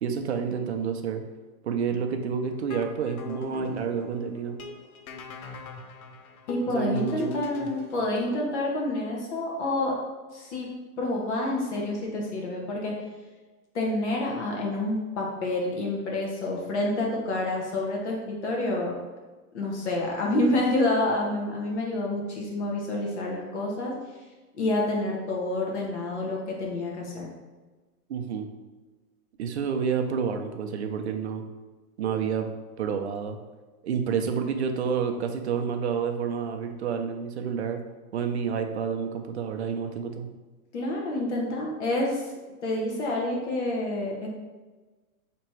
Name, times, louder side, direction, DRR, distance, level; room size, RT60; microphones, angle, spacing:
voice 1, 0.0-1.2 1.6-4.6 6.7-7.3 28.1-28.5 29.4-31.4 32.0-32.5 32.8-33.4 33.8-37.8 38.1-40.3, right 6 dB, 50° right, 5 dB, 0.5 m, -29 dB
sound 1, 2.5-8.3, left 3 dB, 70° left, 0.6 m, -40 dB
voice 2, 6.5-9.9 10.3-10.7 11.0-12.9 13.7-18.9 19.5-23.9 24.6-27.3 40.7-42.2 42.6-44.3, left 2 dB, 50° left, -2 dB, 1.1 m, -28 dB
3.4 x 3.0 x 4.4 m, 1.2 s
hypercardioid pair, 170°, 44 cm